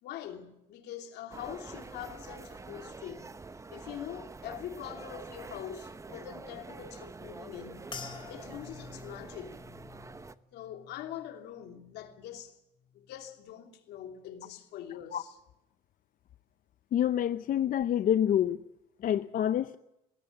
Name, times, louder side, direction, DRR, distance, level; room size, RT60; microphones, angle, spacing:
voice 1, 0.0-3.3 3.7-7.9 8.3-9.6 10.5-12.6 12.9-15.4, left 10 dB, 80° left, 2.9 m, -43 dB
sound 1, 1.3-10.4, right 3 dB, 20° right, 0.9 m, -46 dB
sound 2, 7.9-12.4 12.8-13.4 14.0-14.3, left 6 dB, 30° left, 3.3 m, -49 dB
voice 2, 16.9-18.6 19.0-19.8, left 10 dB, 55° left, 0.7 m, -27 dB
21.0 x 17.0 x 7.2 m
cardioid pair, 110°, 17 cm